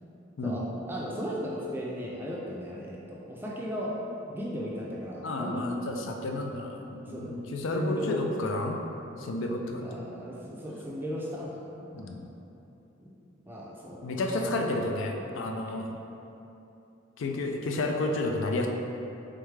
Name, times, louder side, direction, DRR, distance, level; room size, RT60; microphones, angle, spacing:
voice 1, 0.4-4.0 4.3-5.7 6.9-7.4 7.7-8.2 9.8-12.1 13.0-13.2 13.5-14.0, equal, 10° right, -4 dB, 0.4 m, -36 dB
voice 2, 5.2-8.8 9.2-10.0 11.9-12.3 14.0-16.0 17.2-18.7, left 2 dB, 85° left, 2 dB, 0.4 m, -31 dB
3.5 x 3.4 x 3.2 m, 2.8 s
head